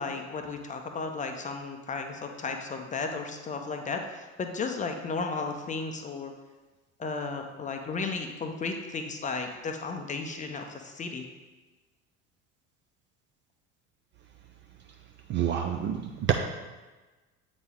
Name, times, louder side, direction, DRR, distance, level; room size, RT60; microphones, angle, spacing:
voice 1, 0.0-6.3 7.0-11.2, left 4 dB, 20° left, 4 dB, 0.6 m, -34 dB
voice 2, 15.3-16.3, right 10 dB, 30° right, 4 dB, 0.4 m, -27 dB
7.8 x 4.1 x 3.7 m, 1.2 s
figure-of-eight pair, 65°, 42 cm